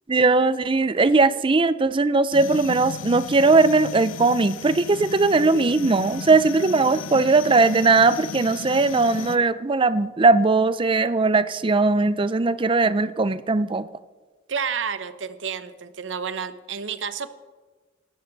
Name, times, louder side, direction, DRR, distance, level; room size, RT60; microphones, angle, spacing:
voice 1, 0.1-13.9, right 3 dB, 25° right, 15 dB, 0.5 m, -19 dB
sound 1, 2.3-9.4, left 5 dB, 80° left, 0.6 m, -35 dB
voice 2, 14.5-17.3, right 6 dB, 70° right, 12 dB, 0.8 m, -30 dB
17.5 x 14.0 x 4.0 m, 1.3 s
head